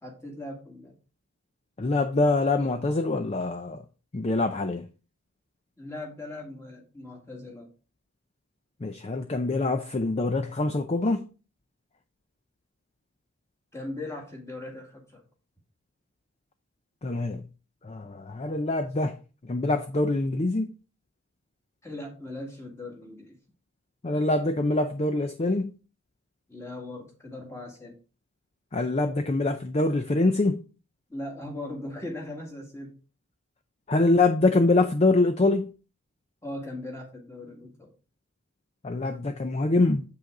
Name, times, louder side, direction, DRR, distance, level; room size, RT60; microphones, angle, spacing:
voice 1, 0.0-1.0 5.8-7.7 13.7-15.2 21.8-23.4 26.5-28.0 31.1-33.0 36.4-37.9, left 1 dB, 10° left, 1.8 m, -39 dB
voice 2, 1.8-3.8 4.1-4.9 8.8-11.2 17.0-17.4 17.8-19.2 19.4-20.7 24.0-25.7 28.7-30.6 33.9-35.7 38.8-40.0, left 2 dB, 30° left, 0.5 m, -24 dB
7.9 x 5.6 x 3.8 m
head